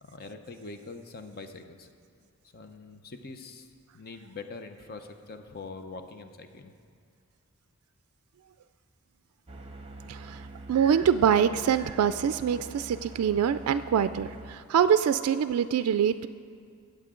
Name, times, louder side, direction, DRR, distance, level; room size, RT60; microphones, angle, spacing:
voice 1, 0.0-1.9 2.5-3.7 3.9-6.7, left 3 dB, 45° left, 7 dB, 0.7 m, -43 dB
sound 1, 9.5-14.6, right 2 dB, 25° right, 0.9 m, -44 dB
voice 2, 10.1-10.4 10.7-16.3, right 8 dB, 85° right, 12 dB, 0.3 m, -24 dB
21.5 x 7.8 x 3.7 m, 2.3 s
head